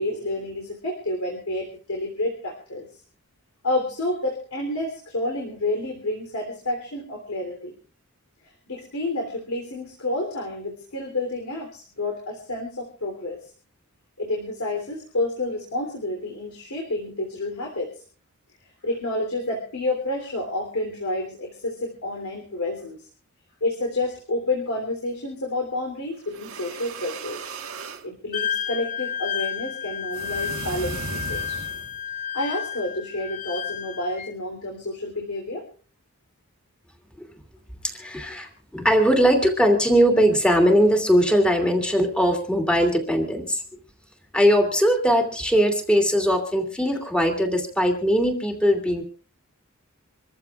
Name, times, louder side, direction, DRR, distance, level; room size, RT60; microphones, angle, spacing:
voice 1, 0.0-2.9 3.6-7.7 8.7-13.4 14.2-17.9 18.8-23.0 23.6-27.4 28.0-31.6 32.3-35.6, left 2 dB, 75° left, 1 dB, 3.3 m, -29 dB
sound 1, 26.2-28.1 30.1-32.0, right 4 dB, 70° right, 1.4 m, -36 dB
Wind instrument woodwind instrument, 28.3-34.3, left 8 dB, 35° left, 0.8 m, -31 dB
voice 2, 37.8-43.6 44.3-49.0, equal, 5° left, 4 dB, 2.5 m, -20 dB
26.5 x 14.5 x 2.4 m, 0.40 s
head